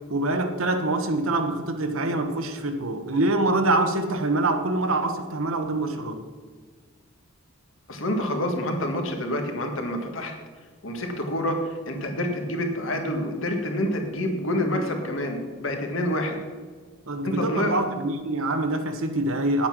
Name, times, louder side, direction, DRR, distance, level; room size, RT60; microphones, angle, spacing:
voice 1, 0.1-6.3 17.1-19.7, right 2 dB, 75° right, 6 dB, 1.2 m, -25 dB
voice 2, 7.9-10.3 10.8-16.4 17.2-17.8, left 1 dB, 65° left, 4 dB, 1.7 m, -27 dB
9.5 x 8.5 x 6.1 m, 1.5 s
head